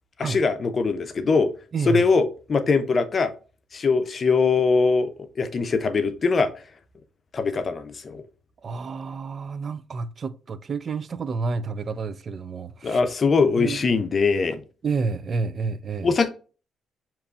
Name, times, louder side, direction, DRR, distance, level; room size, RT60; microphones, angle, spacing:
voice 1, 0.2-1.5 1.9-3.3 3.7-6.5 7.3-8.2 12.8-14.6 16.0-16.3, left 4 dB, 40° left, 0.6 m, -22 dB
voice 2, 8.6-13.0 13.6-13.8 14.8-16.1, right 4 dB, 45° right, 0.3 m, -29 dB
6.5 x 2.9 x 2.4 m
cardioid pair, 90°, 0 cm